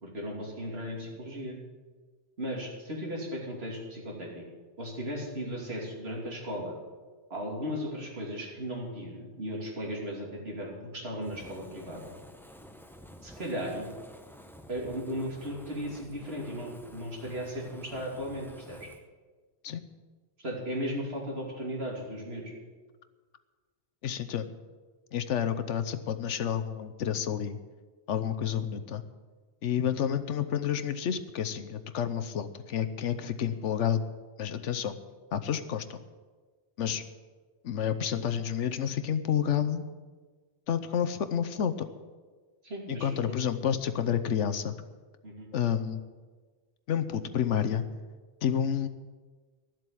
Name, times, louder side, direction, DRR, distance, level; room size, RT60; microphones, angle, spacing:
voice 1, 0.0-1.6 2.4-4.4 4.8-6.7 7.3-12.1 13.2-13.9 14.7-18.9 20.4-22.5 42.6-43.4 45.2-45.5, equal, 60° right, -2 dB, 3.0 m, -36 dB
Fire, 11.2-19.0, equal, ahead, 0.7 m, -51 dB
voice 2, 24.0-24.5 25.1-27.6 28.1-29.0 29.6-34.0 34.4-34.9 35.3-36.0 36.8-37.0 37.6-39.9 40.7-41.9 42.9-44.7 45.5-46.0 46.9-47.8 48.4-48.9, left 8 dB, 85° left, 11 dB, 1.1 m, -29 dB
13.0 x 7.7 x 8.5 m, 1.4 s
omnidirectional pair, 1.2 m